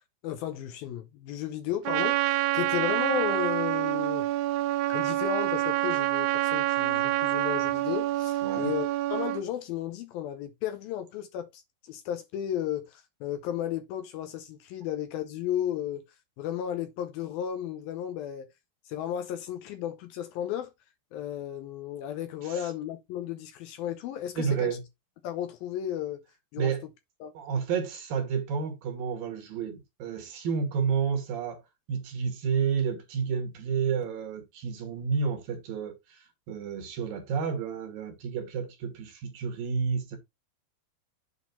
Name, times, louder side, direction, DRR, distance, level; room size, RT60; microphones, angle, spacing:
voice 1, 0.2-4.3 4.9-16.0 16.4-18.5 18.9-20.7 21.1-24.7 25.2-26.2 26.5-26.7 27.2-27.3, left 10 dB, 75° left, 2.4 m, -34 dB
Trumpet, 1.8-9.4, right 17 dB, 90° right, 2.7 m, -27 dB
voice 2, 24.4-24.8 26.6-26.8 27.3-31.6 31.9-40.2, right 6 dB, 65° right, 3.0 m, -30 dB
8.2 x 4.2 x 4.2 m
omnidirectional pair, 4.7 m